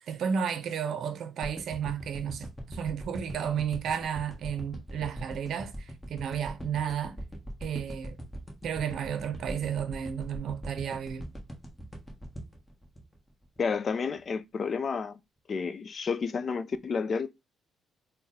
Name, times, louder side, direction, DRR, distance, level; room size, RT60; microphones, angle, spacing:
voice 1, 0.1-7.2 7.6-8.2 8.6-11.3, right 8 dB, 70° right, 0.6 m, -32 dB
sound 1, 1.4-13.7 14.2-14.3, equal, 10° left, 1.3 m, -41 dB
voice 2, 13.6-15.2 15.5-17.3, left 5 dB, 45° left, 0.4 m, -30 dB
3.6 x 2.2 x 4.1 m
cardioid pair, 90°, 0 cm